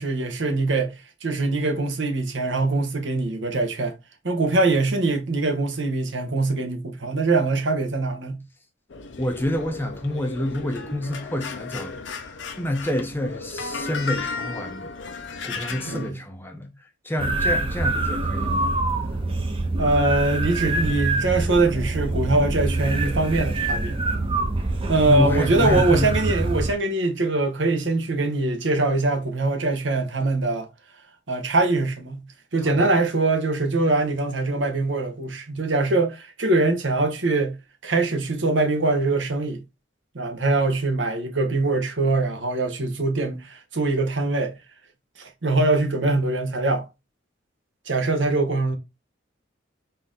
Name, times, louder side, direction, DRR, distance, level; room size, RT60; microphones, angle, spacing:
voice 1, 0.0-3.9 4.2-8.4 15.9-16.2 19.8-24.0 24.9-30.7 31.3-32.2 32.5-37.6 37.8-39.6 40.1-44.5 45.2-46.8 47.9-48.8, right 2 dB, 70° right, 1.1 m, -23 dB
sound 1, 8.9-16.1, left 4 dB, 70° left, 0.6 m, -35 dB
voice 2, 9.2-14.9 15.4-18.7 25.1-26.2 26.4-26.5 32.6-32.9, left 1 dB, 10° left, 0.6 m, -28 dB
sound 2, 17.2-26.7, right 2 dB, 30° right, 0.6 m, -25 dB
4.2 x 2.7 x 3.7 m
head